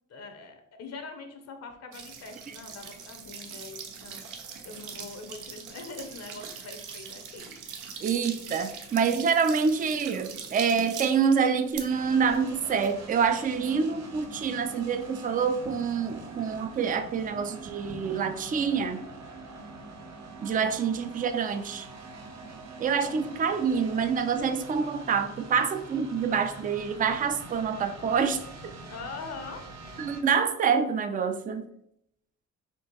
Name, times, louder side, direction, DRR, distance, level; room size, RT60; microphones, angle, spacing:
voice 1, 0.1-4.2 4.6-7.6 20.8-20.9 28.9-29.6, left 4 dB, 55° left, 6 dB, 0.7 m, -43 dB
sound 1, 1.9-13.6, right 6 dB, 85° right, 0.7 m, -42 dB
voice 2, 8.0-19.0 20.4-21.9 22.8-28.7 30.0-31.6, right 6 dB, 30° right, 9 dB, 0.4 m, -26 dB
sound 2, 11.9-30.2, right 3 dB, 60° right, 0.9 m, -44 dB
4.3 x 2.9 x 3.0 m, 0.74 s
cardioid pair, 90°, 30 cm